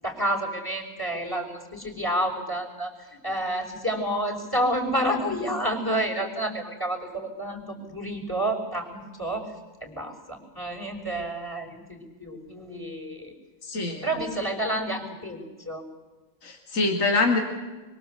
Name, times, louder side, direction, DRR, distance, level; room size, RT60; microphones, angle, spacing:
voice 1, 0.0-9.5 9.8-13.3 14.0-15.8, right 1 dB, 15° left, 2 dB, 5.8 m, -29 dB
voice 2, 13.6-14.1 16.4-17.4, left 3 dB, 55° left, 2 dB, 3.0 m, -24 dB
26.5 x 24.0 x 8.2 m, 1.2 s
omnidirectional pair, 1.7 m